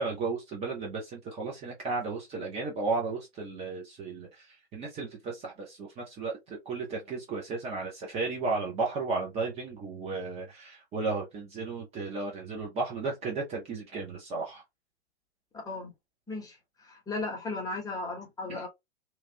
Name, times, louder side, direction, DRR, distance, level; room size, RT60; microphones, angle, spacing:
voice 1, 0.0-14.6 18.5-18.7, right 3 dB, 20° right, 0.7 m, -34 dB
voice 2, 15.5-15.9 16.3-18.7, left 3 dB, 10° left, 1.0 m, -36 dB
2.9 x 2.4 x 2.7 m
figure-of-eight pair, 110°, 32 cm